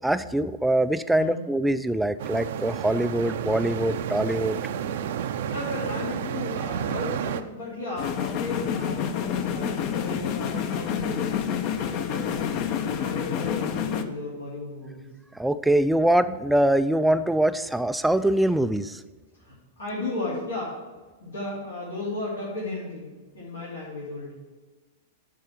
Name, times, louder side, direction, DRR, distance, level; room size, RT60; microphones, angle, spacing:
voice 1, 0.0-4.6 15.3-19.0, right 1 dB, 5° right, 10 dB, 0.3 m, -23 dB
sound 1, 2.2-7.4, right 8 dB, 65° right, 0.5 m, -31 dB
voice 2, 5.1-11.5 11.8-12.5 12.9-15.1 19.3-20.8 21.2-24.3, left 2 dB, 85° left, -8 dB, 2.9 m, -35 dB
sound 2, 8.0-14.0, left 8 dB, 45° left, 0.8 m, -28 dB
9.4 x 4.1 x 7.4 m, 1.3 s
hypercardioid pair, 105°, 0 cm